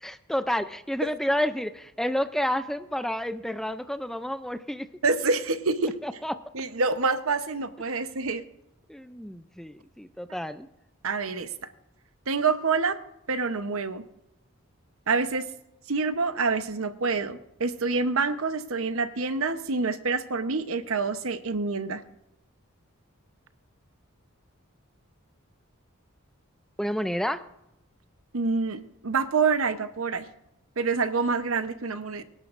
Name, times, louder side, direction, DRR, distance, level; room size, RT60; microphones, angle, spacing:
voice 1, 0.0-4.9 6.0-6.3 8.9-10.7 26.8-27.4, equal, ahead, 10 dB, 0.4 m, -30 dB
voice 2, 5.0-5.9 6.5-8.4 11.0-11.5 12.3-13.0 13.3-14.0 15.1-15.5 15.9-22.0 28.3-30.3 30.8-32.2, right 4 dB, 75° right, 10 dB, 0.9 m, -27 dB
24.5 x 11.0 x 2.6 m, 0.87 s
head